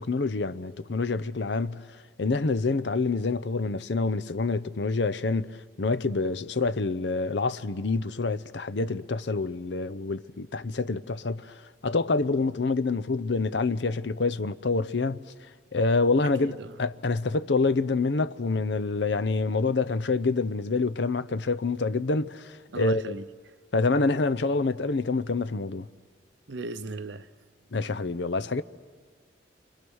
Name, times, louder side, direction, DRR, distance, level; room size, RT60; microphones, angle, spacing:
voice 1, 0.0-1.8 2.2-11.5 11.8-15.2 15.7-23.2 23.7-25.9 27.7-28.6, left 3 dB, 65° left, 0.7 m, -27 dB
voice 2, 16.2-16.8 22.7-23.3 26.5-27.3, right 3 dB, 65° right, 0.8 m, -37 dB
29.0 x 25.5 x 6.3 m
head